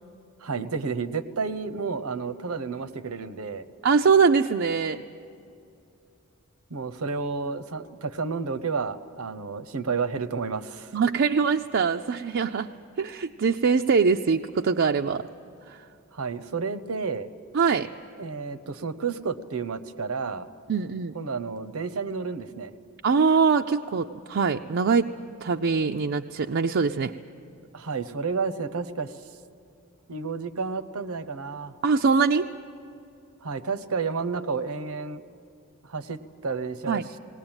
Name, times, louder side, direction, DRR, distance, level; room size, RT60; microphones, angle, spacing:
voice 1, 0.4-3.6 6.7-10.9 16.1-17.3 18.2-20.5 21.1-22.7 27.7-29.2 30.1-31.7 33.4-35.2 35.8-37.0, right 5 dB, 85° right, 12 dB, 0.9 m, -31 dB
voice 2, 3.8-5.0 10.9-12.7 13.0-15.3 15.7-15.8 17.5-17.9 20.7-21.1 23.0-25.1 25.4-27.1 31.8-32.5 36.9-37.0, right 5 dB, 55° right, 4 dB, 0.5 m, -23 dB
19.5 x 18.5 x 8.9 m, 2.5 s
head